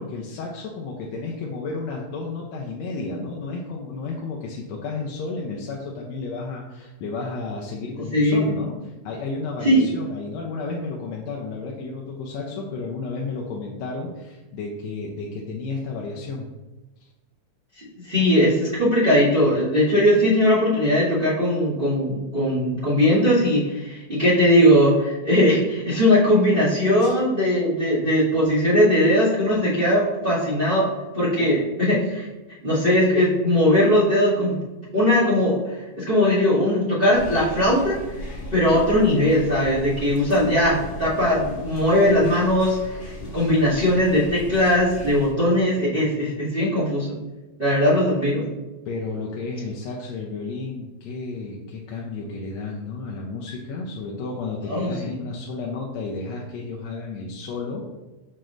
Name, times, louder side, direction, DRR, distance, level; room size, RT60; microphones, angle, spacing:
voice 1, 0.0-16.5 17.0-17.1 27.0-27.1 31.4-31.5 48.9-57.9, left 3 dB, 75° left, -1 dB, 1.8 m, -32 dB
voice 2, 8.1-8.4 9.6-9.9 18.0-30.9 31.1-32.3 32.6-34.6 34.9-38.0 38.5-47.2 47.6-48.4 54.7-55.1, left 1 dB, 20° right, -13 dB, 2.0 m, -19 dB
sound 1, 37.1-45.3, left 1 dB, 40° left, 1.6 m, -37 dB
6.5 x 6.0 x 2.5 m, 1.1 s
omnidirectional pair, 3.3 m